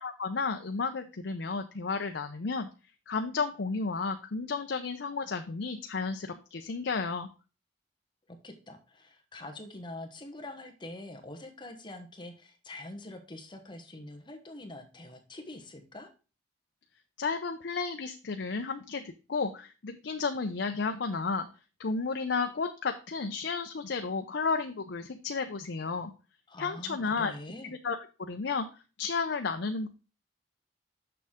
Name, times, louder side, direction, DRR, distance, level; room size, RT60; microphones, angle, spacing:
voice 1, 0.0-2.7 3.1-7.3 17.2-21.5 21.8-26.1 26.6-27.3 27.8-28.7 29.0-29.9, left 4 dB, 75° left, 6 dB, 0.6 m, -32 dB
voice 2, 8.3-16.1 26.5-27.7, left 1 dB, 25° left, 5 dB, 1.0 m, -45 dB
6.8 x 6.3 x 3.6 m, 0.32 s
head